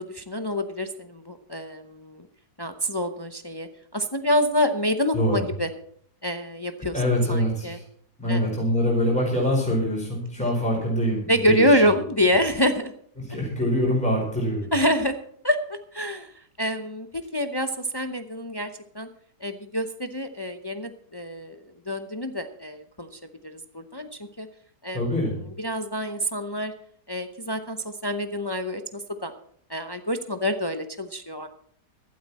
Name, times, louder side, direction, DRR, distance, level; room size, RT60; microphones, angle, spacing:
voice 1, 0.0-2.3 2.6-5.7 6.2-7.0 7.3-7.8 8.3-8.6 11.3-12.9 14.7-15.1 15.4-16.3 16.6-18.7 18.9-19.1 19.4-24.1 24.4-24.5 24.8-25.1 25.6-26.7 27.1-29.3 29.7-31.5, equal, 30° left, 7 dB, 0.4 m, -26 dB
voice 2, 6.9-7.8 8.2-11.8 13.3-14.6 24.9-25.3, equal, 5° left, -3 dB, 4.7 m, -24 dB
15.0 x 12.5 x 4.2 m, 0.63 s
omnidirectional pair, 1.8 m